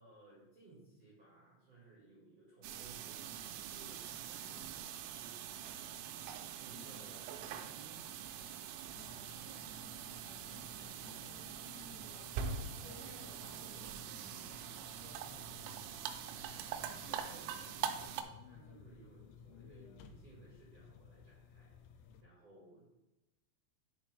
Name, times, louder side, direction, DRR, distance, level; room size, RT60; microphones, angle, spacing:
voice 1, 0.0-8.2 12.0-12.9 15.4-15.8 16.9-17.5 17.8-23.0, right 2 dB, 65° right, -6 dB, 1.5 m, -60 dB
sound 1, 2.6-18.2, right 8 dB, 85° right, 3.2 m, -44 dB
voice 2, 6.7-7.1 8.5-12.2 12.8-14.9 16.5-17.2 17.8-18.0, left 2 dB, 70° left, -5 dB, 4.4 m, -59 dB
sound 2, 8.9-22.2, left 6 dB, 85° left, 3.1 m, -58 dB
9.9 x 4.2 x 3.3 m, 0.98 s
omnidirectional pair, 5.8 m